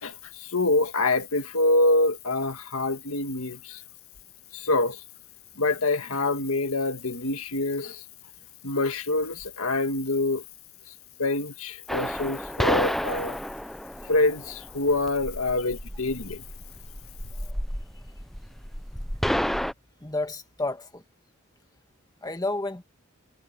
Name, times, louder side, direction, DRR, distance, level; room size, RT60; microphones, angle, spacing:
voice 1, 0.0-3.8 4.5-5.0 5.6-8.0 8.6-10.4 11.2-13.4 14.1-16.4, left 2 dB, 70° left, 1.9 m, -26 dB
sound 1, 11.9-19.7, equal, ahead, 0.6 m, -31 dB
voice 2, 20.0-21.0 22.2-22.8, left 2 dB, 15° left, 1.5 m, -30 dB
head